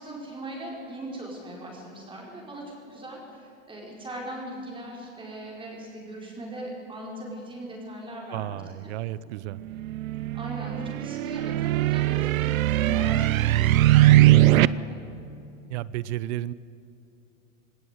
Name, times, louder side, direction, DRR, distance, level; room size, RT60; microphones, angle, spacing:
voice 1, 0.0-8.6 10.3-15.0, right 1 dB, 10° right, -2 dB, 4.8 m, -39 dB
voice 2, 8.3-9.6 15.7-16.5, right 14 dB, 55° right, 19 dB, 0.8 m, -32 dB
sound 1, 9.7-14.7, right 15 dB, 85° right, 0.7 m, -20 dB
19.5 x 17.5 x 9.5 m, 2.8 s
supercardioid pair, 145°, 40 cm